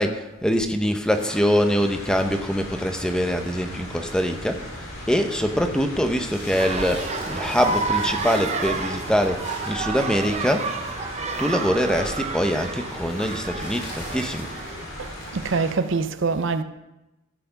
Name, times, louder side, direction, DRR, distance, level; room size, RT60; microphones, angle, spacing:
voice 1, 0.0-4.7 5.1-10.8 11.4-14.5, equal, 5° left, 0.8 m, -24 dB
sound 1, 1.1-15.7, left 1 dB, 75° left, 3.5 m, -39 dB
sound 2, 1.8-15.5, equal, 55° left, 4.7 m, -41 dB
sound 3, 6.5-14.8, right 3 dB, 30° right, 0.9 m, -30 dB
voice 2, 15.0-16.6, right 4 dB, 60° right, 0.6 m, -25 dB
14.0 x 5.9 x 5.9 m
head